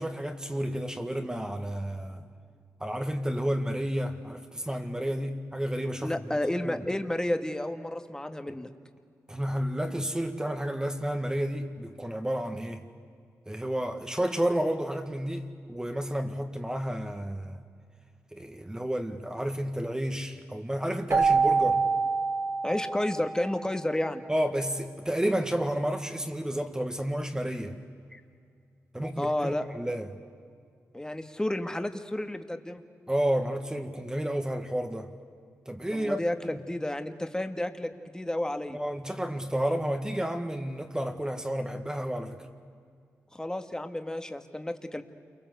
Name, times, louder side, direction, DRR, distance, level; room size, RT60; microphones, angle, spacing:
voice 1, 0.0-2.3 2.8-6.2 6.6-6.8 8.5-8.6 9.3-12.8 13.5-17.6 18.3-21.8 24.3-27.8 28.9-30.1 33.1-35.1 35.7-36.2 36.5-36.6 38.7-42.4, right 1 dB, 10° right, 5 dB, 1.8 m, -31 dB
voice 2, 6.0-8.7 22.6-24.2 28.1-28.2 29.2-29.7 30.9-32.8 35.9-38.8 43.3-45.0, left 1 dB, 10° left, 7 dB, 1.8 m, -31 dB
Keyboard (musical), 21.1-23.7, right 4 dB, 60° right, 2.7 m, -26 dB
28.5 x 23.5 x 8.1 m, 2.2 s
cardioid pair, 65°, 5 cm